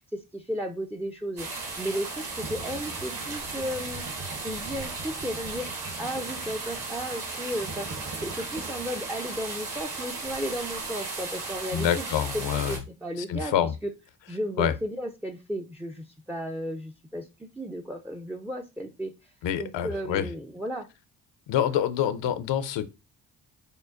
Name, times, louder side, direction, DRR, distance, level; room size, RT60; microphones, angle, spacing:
voice 1, 0.1-4.0 4.4-5.7 6.0-13.5 14.3-20.9, equal, 5° right, 0.4 m, -34 dB
sound 1, 1.4-12.8, right 3 dB, 60° right, 2.2 m, -36 dB
sound 2, 2.4-9.1, right 2 dB, 40° right, 0.9 m, -44 dB
voice 2, 11.7-12.8 13.3-13.7 14.6-14.7 19.4-20.3 21.5-22.8, left 10 dB, 65° left, 0.6 m, -26 dB
6.5 x 2.2 x 2.4 m
hypercardioid pair, 45°, 48 cm